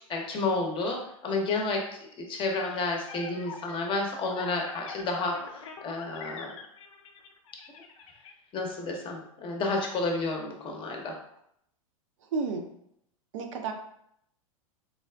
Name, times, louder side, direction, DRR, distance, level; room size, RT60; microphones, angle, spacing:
voice 1, 0.0-1.9 2.2-6.5 8.5-11.2, left 3 dB, 30° left, 1 dB, 0.7 m, -31 dB
sound 1, 2.6-8.3, left 5 dB, 70° left, 0.5 m, -44 dB
voice 2, 12.3-12.7 13.3-13.7, right 4 dB, 65° right, 4 dB, 0.5 m, -31 dB
3.9 x 2.3 x 2.2 m, 0.73 s
hypercardioid pair, 100°, 18 cm